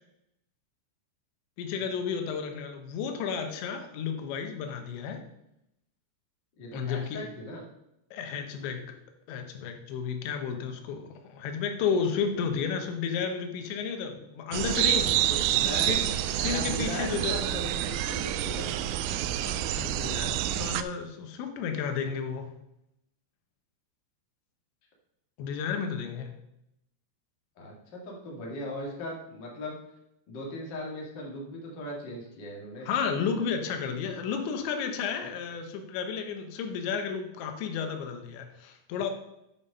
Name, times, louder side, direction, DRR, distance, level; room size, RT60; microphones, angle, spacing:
voice 1, 1.6-5.2 6.7-7.2 8.1-8.9 9.3-15.1 15.7-16.0 16.3-17.4 19.4-22.5 25.4-26.4 32.9-39.1, left 6 dB, 85° left, 5 dB, 3.4 m, -32 dB
voice 2, 6.6-7.6 15.1-15.9 16.5-18.8 27.6-29.8 30.3-32.9, left 1 dB, 40° left, -2 dB, 1.7 m, -39 dB
sound 1, 14.5-20.8, right 12 dB, 85° right, 2.8 m, -28 dB
9.3 x 5.5 x 5.4 m, 0.83 s
omnidirectional pair, 5.1 m